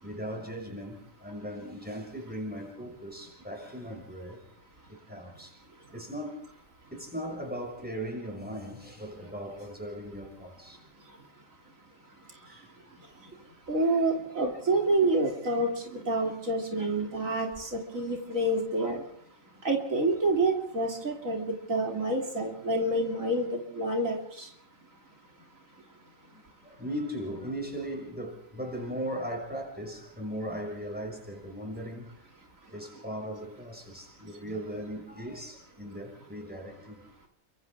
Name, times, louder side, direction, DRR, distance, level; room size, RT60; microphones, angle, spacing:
voice 1, 0.0-4.4 4.9-5.6 5.9-6.4 6.9-10.8 12.1-12.7 13.0-13.2 13.7-14.1 19.5-19.7 26.3-32.3 32.7-37.1, equal, 5° right, 6.4 m, -38 dB
voice 2, 13.7-19.0 19.6-24.5, right 2 dB, 85° right, 3.5 m, -28 dB
29.0 x 25.0 x 3.7 m
omnidirectional pair, 1.4 m